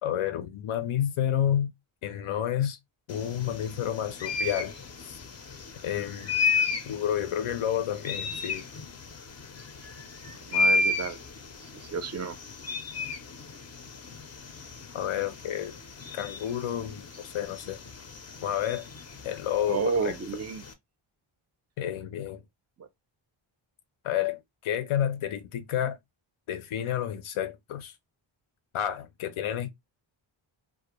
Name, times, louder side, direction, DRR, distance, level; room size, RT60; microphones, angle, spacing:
voice 1, 0.0-1.7 2.0-2.8 3.1-4.7 5.0-5.1 5.8-6.3 6.9-8.7 14.9-15.8 16.1-17.8 18.4-18.9 19.2-20.2 21.8-22.4 24.0-26.0 26.5-27.9 28.7-29.7, left 10 dB, 85° left, 0.6 m, -30 dB
sound 1, 3.1-20.7, left 3 dB, 35° left, 0.4 m, -33 dB
voice 2, 10.5-11.2 11.6-12.4 19.7-20.6 22.8-22.9, right 5 dB, 35° right, 0.4 m, -31 dB
2.4 x 2.0 x 2.8 m
wide cardioid pair, 130°, 49 cm